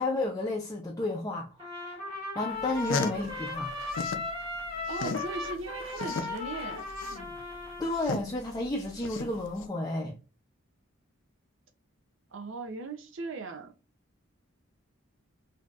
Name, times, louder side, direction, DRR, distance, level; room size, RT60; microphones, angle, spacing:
voice 1, 0.0-2.0 2.3-3.7 7.8-10.1, left 2 dB, 15° left, 0.5 m, -32 dB
Trumpet, 1.6-8.2, left 3 dB, 25° right, 2.3 m, -37 dB
sound 1, 2.6-4.3 4.6-9.6, left 4 dB, 65° left, 0.5 m, -35 dB
voice 2, 4.9-6.8 12.3-13.7, right 3 dB, 65° right, 0.6 m, -38 dB
5.5 x 2.7 x 2.4 m
head